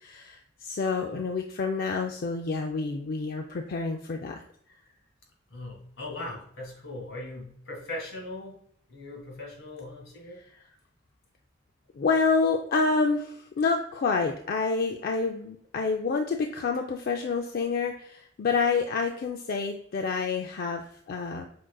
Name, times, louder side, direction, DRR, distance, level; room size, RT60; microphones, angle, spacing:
voice 1, 0.0-4.4 12.0-21.5, left 4 dB, 50° left, 3 dB, 0.4 m, -28 dB
voice 2, 5.5-8.6 8.9-10.4, left 2 dB, 80° left, 1 dB, 1.9 m, -39 dB
6.0 x 3.7 x 2.3 m, 0.66 s
head